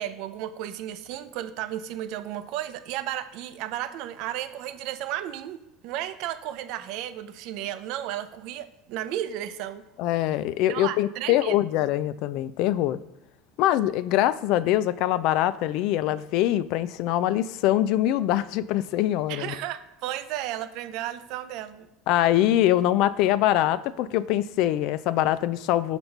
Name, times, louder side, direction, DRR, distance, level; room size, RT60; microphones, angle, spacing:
voice 1, 0.0-9.8 10.7-11.6 19.3-21.9, right 12 dB, 65° right, 11 dB, 0.5 m, -33 dB
voice 2, 10.0-13.0 13.6-19.5 22.1-26.0, left 13 dB, 65° left, 16 dB, 0.3 m, -23 dB
4.5 x 4.0 x 5.2 m, 0.93 s
supercardioid pair, 105°, 0 cm